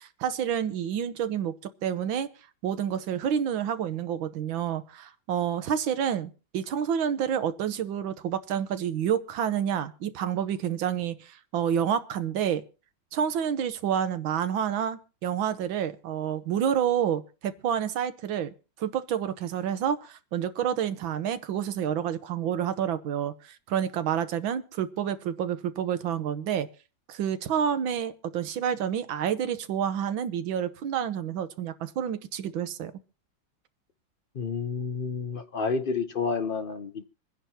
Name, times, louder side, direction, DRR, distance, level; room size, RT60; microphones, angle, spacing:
voice 1, 0.0-1.5 1.8-2.3 2.6-12.6 13.1-18.5 18.8-26.7 27.1-32.9, right 9 dB, 80° right, 1.7 m, -29 dB
voice 2, 34.3-37.0, left 5 dB, 65° left, 0.5 m, -30 dB
26.0 x 10.5 x 2.8 m
omnidirectional pair, 2.1 m